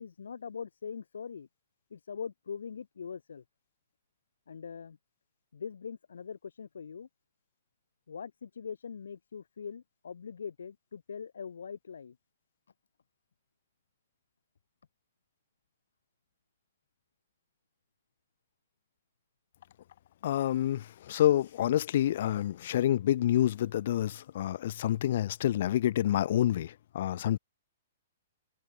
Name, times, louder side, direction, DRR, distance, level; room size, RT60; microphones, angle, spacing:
voice 1, 0.0-1.5 1.9-3.4 4.5-5.0 5.5-7.1 8.1-12.2, left 6 dB, 80° left, 7.0 m, -42 dB
voice 2, 20.2-27.4, left 12 dB, 60° left, 0.5 m, -28 dB
hypercardioid pair, 125°, 0 cm